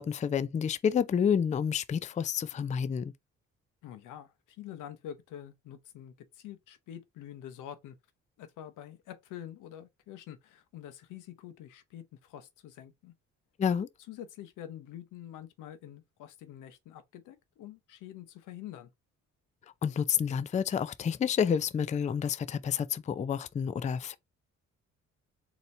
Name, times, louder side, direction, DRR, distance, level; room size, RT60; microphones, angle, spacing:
voice 1, 0.0-3.1 13.6-13.9 19.8-24.2, left 7 dB, 25° left, 0.4 m, -29 dB
voice 2, 3.8-8.0 8.4-13.1 14.1-18.9, left 11 dB, 85° left, 0.8 m, -46 dB
4.1 x 2.9 x 3.2 m
cardioid pair, 90°, 30 cm